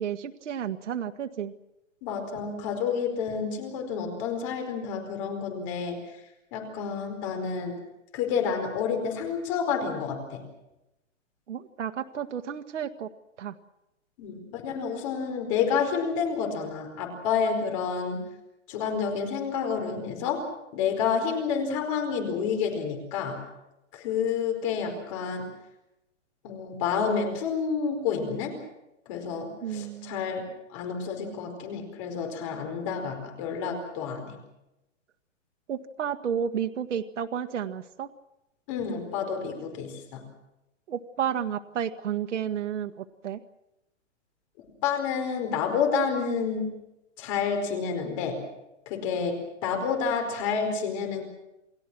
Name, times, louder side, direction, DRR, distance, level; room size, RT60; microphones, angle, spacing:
voice 1, 0.0-1.5 11.5-13.1 13.4-13.5 29.6-30.2 35.7-38.1 40.9-43.4, right 8 dB, 70° right, 6 dB, 1.7 m, -32 dB
voice 2, 2.0-6.0 6.5-7.8 8.1-10.4 14.2-18.2 18.7-23.4 23.9-25.5 26.4-28.6 29.1-34.4 38.7-40.2 44.8-46.7 47.2-48.4 48.9-51.2, left 6 dB, 25° left, 4 dB, 4.7 m, -29 dB
29.5 x 19.5 x 6.2 m, 0.90 s
hypercardioid pair, 180°, 38 cm